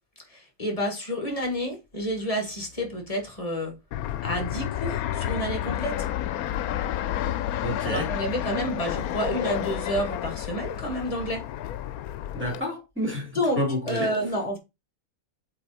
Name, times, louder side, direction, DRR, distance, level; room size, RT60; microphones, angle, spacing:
voice 1, 0.6-3.7 4.2-6.0 7.8-11.4 13.4-13.6 13.9-14.6, equal, 25° left, 1.8 m, -29 dB
Fixed-wing aircraft airplane, 3.9-12.6, left 12 dB, 90° left, 1.1 m, -30 dB
voice 2, 7.6-8.1 12.3-14.2, left 1 dB, 10° right, 2.9 m, -29 dB
7.8 x 3.4 x 4.2 m
omnidirectional pair, 1.5 m